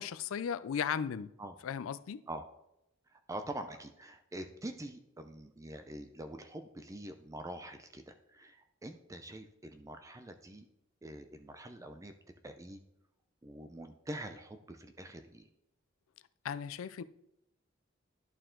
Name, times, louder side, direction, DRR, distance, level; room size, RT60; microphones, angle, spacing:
voice 1, 0.0-1.3 1.6-2.2 16.4-17.0, left 7 dB, 75° left, 0.4 m, -36 dB
voice 2, 3.1-10.7 11.0-12.1 12.4-12.8 13.4-15.5, right 1 dB, 15° right, 0.4 m, -45 dB
11.0 x 4.6 x 3.8 m
head